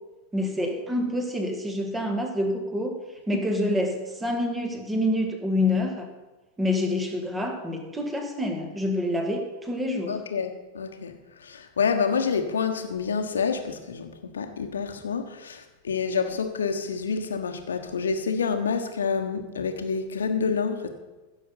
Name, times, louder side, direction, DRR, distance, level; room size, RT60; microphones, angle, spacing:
voice 1, 0.3-3.0 3.3-6.1 6.6-10.2, left 1 dB, 10° right, 4 dB, 1.9 m, -27 dB
voice 2, 10.1-20.9, left 5 dB, 70° left, 6 dB, 1.3 m, -28 dB
15.0 x 7.0 x 5.6 m, 1.2 s
figure-of-eight pair, 90°, 0 cm